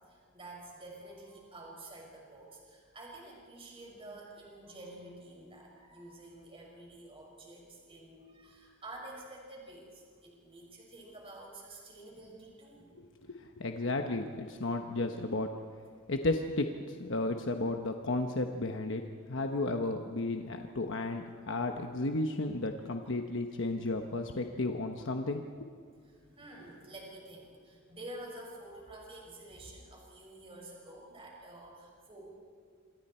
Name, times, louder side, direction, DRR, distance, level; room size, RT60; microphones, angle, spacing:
voice 1, 0.1-12.9 23.9-24.0 24.5-24.6 26.0-32.3, right 1 dB, 25° right, -1 dB, 5.8 m, -49 dB
voice 2, 12.9-15.5 16.1-19.0 19.3-25.7, left 2 dB, 60° left, 4 dB, 1.1 m, -33 dB
27.0 x 26.5 x 4.4 m, 2.1 s
head